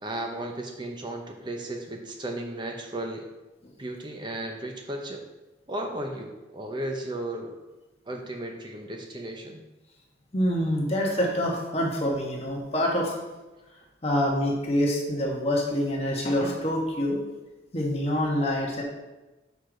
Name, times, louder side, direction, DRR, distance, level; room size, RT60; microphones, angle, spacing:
voice 1, 0.0-3.3 3.8-5.2 5.7-7.6 8.1-9.6, right 1 dB, 25° right, 3 dB, 0.7 m, -35 dB
voice 2, 10.3-13.1 14.0-17.2 17.7-18.8, equal, 30° left, -2 dB, 1.2 m, -26 dB
6.8 x 4.7 x 3.8 m, 1.1 s
head